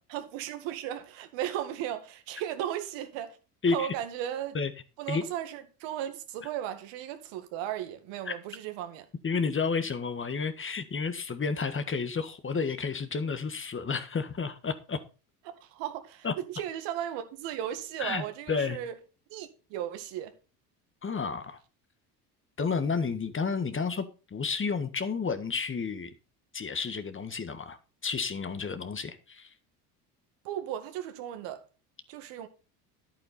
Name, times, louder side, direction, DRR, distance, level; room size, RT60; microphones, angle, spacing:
voice 1, 0.1-3.4 3.7-4.6 5.0-9.1 15.5-16.3 16.5-18.9 19.3-20.3 30.4-31.6 32.1-32.5, right 11 dB, 70° right, 2.1 m, -36 dB
voice 2, 3.6-3.9 4.5-4.7 5.1-5.2 8.2-8.3 9.2-15.0 16.2-16.3 18.0-18.8 21.0-21.6 22.6-26.1 26.5-29.5, left 5 dB, 25° left, 1.5 m, -31 dB
11.0 x 8.9 x 4.3 m
hypercardioid pair, 70°, 47 cm